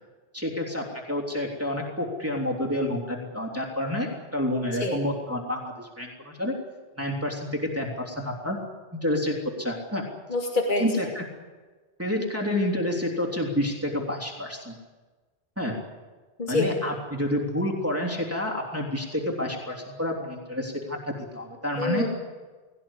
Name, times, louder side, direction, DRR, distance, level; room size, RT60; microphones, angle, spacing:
voice 1, 0.3-6.5 7.0-8.6 9.0-10.0 10.8-11.2 12.0-14.7 15.6-15.7 16.5-22.0, left 1 dB, 15° right, -2 dB, 3.2 m, -29 dB
voice 2, 10.3-10.9 16.4-16.7 21.8-22.1, left 2 dB, 50° left, 1 dB, 2.4 m, -26 dB
20.0 x 17.5 x 9.9 m, 1.3 s
omnidirectional pair, 1.1 m